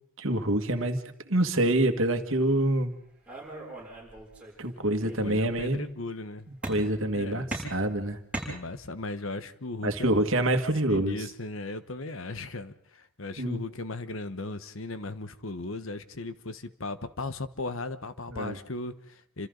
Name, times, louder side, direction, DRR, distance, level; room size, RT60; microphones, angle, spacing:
voice 1, 0.2-1.0 1.3-3.0 4.6-5.9 6.7-8.2 9.8-11.2 13.4-13.6 18.3-18.6, right 1 dB, 65° right, 6 dB, 2.0 m, -26 dB
sound 1, 3.3-4.6 5.0-5.7 6.6-7.1 7.5-9.1, right 2 dB, 5° right, 6.9 m, -39 dB
voice 2, 5.2-6.5 7.1-7.5 8.4-10.2 10.9-19.5, left 2 dB, 65° left, 12 dB, 1.2 m, -37 dB
29.0 x 26.5 x 4.0 m, 0.72 s
head